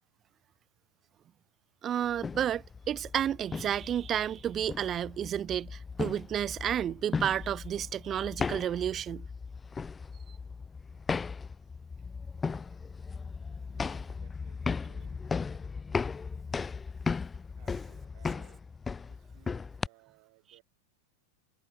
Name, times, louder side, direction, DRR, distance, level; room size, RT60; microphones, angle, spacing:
voice 1, 1.8-9.3, right 10 dB, 25° right, 0.3 m, -31 dB
sound 1, 2.1-19.9, left 5 dB, 15° left, 0.6 m, -37 dB
voice 2, 13.7-15.8 17.6-20.6, right 30 dB, 45° right, 7.0 m, -63 dB
figure-of-eight pair, 90°, 0 cm